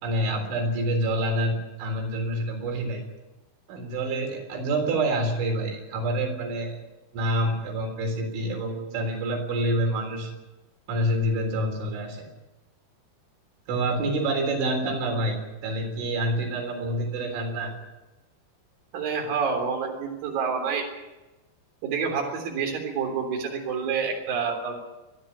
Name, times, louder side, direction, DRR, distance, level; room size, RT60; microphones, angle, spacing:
voice 1, 0.0-3.1 3.7-6.8 7.1-10.3 10.9-12.3 13.7-17.7, right 1 dB, 85° right, 2 dB, 6.2 m, -27 dB
voice 2, 18.9-20.9 21.8-24.8, right 5 dB, 50° right, 1 dB, 5.0 m, -28 dB
27.0 x 10.5 x 10.0 m, 1.1 s
omnidirectional pair, 5.3 m